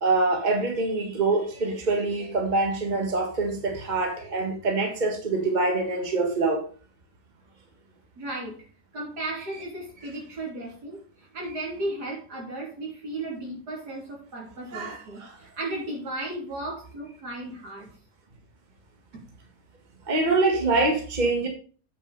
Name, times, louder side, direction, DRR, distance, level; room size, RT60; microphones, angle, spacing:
voice 1, 0.0-6.6 14.7-15.4 20.1-21.5, right 3 dB, 30° right, 3 dB, 1.9 m, -25 dB
voice 2, 8.2-8.6 8.9-17.9 19.1-19.2, right 1 dB, 80° right, -2 dB, 3.8 m, -35 dB
8.1 x 6.3 x 5.3 m, 0.39 s
omnidirectional pair, 1.7 m